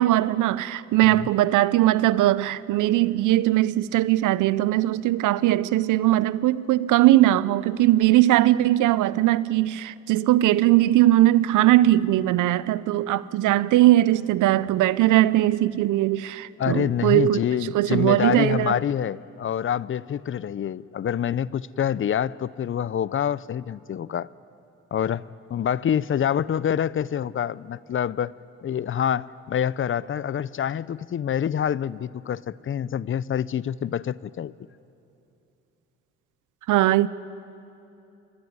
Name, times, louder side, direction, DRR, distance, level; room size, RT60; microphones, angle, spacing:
voice 1, 0.0-17.4 17.7-18.8 36.7-37.1, right 15 dB, 85° right, 0.7 m, -20 dB
voice 2, 16.6-24.3 24.9-28.3 28.6-34.5, left 9 dB, 45° left, 0.6 m, -26 dB
25.0 x 22.5 x 9.5 m
cardioid pair, 90°, 30 cm